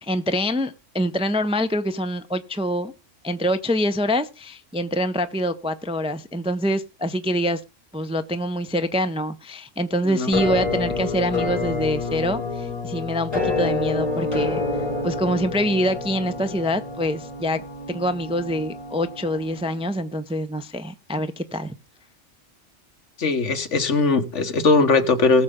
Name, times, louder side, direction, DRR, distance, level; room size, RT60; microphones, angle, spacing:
voice 1, 0.0-2.9 3.2-7.6 7.9-14.6 15.0-17.6 17.9-21.7, equal, 5° right, 0.4 m, -25 dB
voice 2, 10.1-10.4 23.2-25.4, left 3 dB, 75° left, 1.6 m, -20 dB
Musical instrument, 10.3-20.1, left 3 dB, 20° left, 6.5 m, -28 dB
19.0 x 6.7 x 3.7 m
omnidirectional pair, 1.3 m